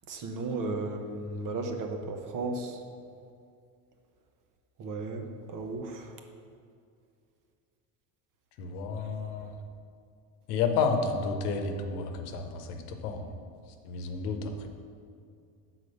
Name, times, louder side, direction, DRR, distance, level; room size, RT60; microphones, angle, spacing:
voice 1, 0.1-2.8 4.8-6.1, right 3 dB, 45° right, 4 dB, 0.9 m, -35 dB
voice 2, 8.6-9.6 10.5-13.3 13.8-14.7, left 4 dB, 85° left, 5 dB, 0.9 m, -31 dB
6.4 x 4.1 x 6.4 m, 2.3 s
supercardioid pair, 100°, 45 cm